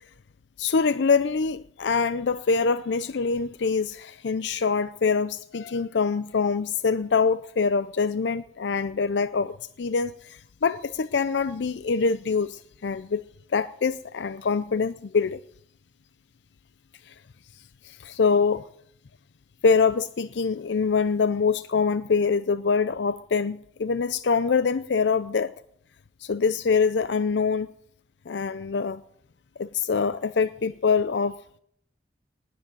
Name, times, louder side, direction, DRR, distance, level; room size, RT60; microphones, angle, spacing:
voice 1, 0.6-13.2 13.5-15.4 17.8-18.6 19.6-25.5 26.2-27.7 28.3-29.0 29.6-31.4, left 5 dB, 85° left, 0.5 m, -24 dB
19.0 x 7.7 x 9.0 m
head